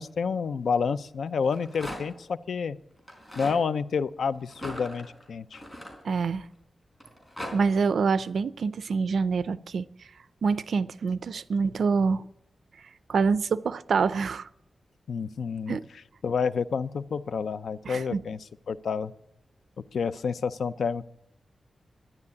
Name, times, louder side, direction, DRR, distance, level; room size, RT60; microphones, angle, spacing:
voice 1, 0.0-2.8 3.4-5.6 15.1-15.8 16.2-18.4 18.7-19.1 19.9-21.1, left 5 dB, 85° left, 0.5 m, -29 dB
Rattle, 1.3-2.2 3.0-3.6 4.5-6.5 7.0-7.5, equal, 20° left, 4.1 m, -39 dB
voice 2, 6.0-6.5 7.5-9.9 10.4-12.2 13.1-14.5 15.7-15.9 17.8-18.2, right 5 dB, 80° right, 0.5 m, -26 dB
12.0 x 10.5 x 8.5 m
wide cardioid pair, 130°, 0 cm